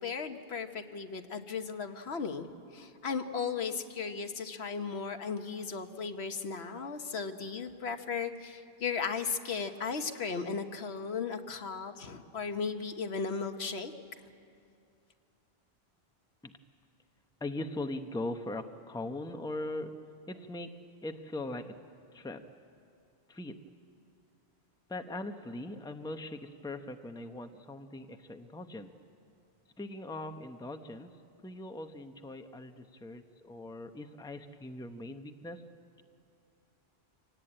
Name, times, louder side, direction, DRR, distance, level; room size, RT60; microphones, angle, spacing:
voice 1, 0.0-2.5 2.7-13.9, left 5 dB, 75° left, 7 dB, 1.4 m, -36 dB
voice 2, 17.4-20.0 20.3-20.7 21.0-21.7 22.1-22.4 23.3-23.6 24.9-28.9 29.8-31.1 31.4-35.6, left 2 dB, 5° left, 7 dB, 0.8 m, -40 dB
26.0 x 18.0 x 8.8 m, 2.4 s
omnidirectional pair, 1.1 m